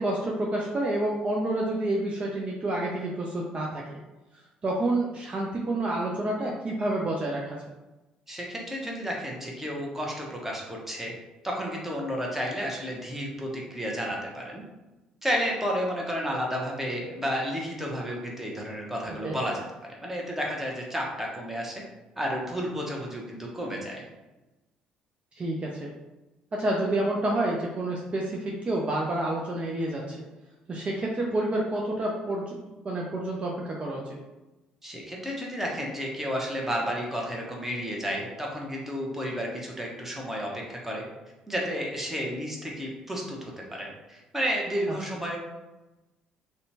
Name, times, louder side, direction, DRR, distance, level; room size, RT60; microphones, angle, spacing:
voice 1, 0.0-3.8 4.3-7.6 19.2-19.4 25.4-25.9 26.5-30.2 30.7-32.6 32.8-34.0, right 1 dB, 35° right, -2 dB, 0.5 m, -29 dB
voice 2, 8.3-11.1 11.4-14.6 15.2-19.6 20.0-21.8 22.2-24.0 34.8-41.0 41.5-45.4, equal, 10° right, -2 dB, 0.9 m, -32 dB
2.7 x 2.2 x 2.7 m, 1.1 s
hypercardioid pair, 55°, 3 cm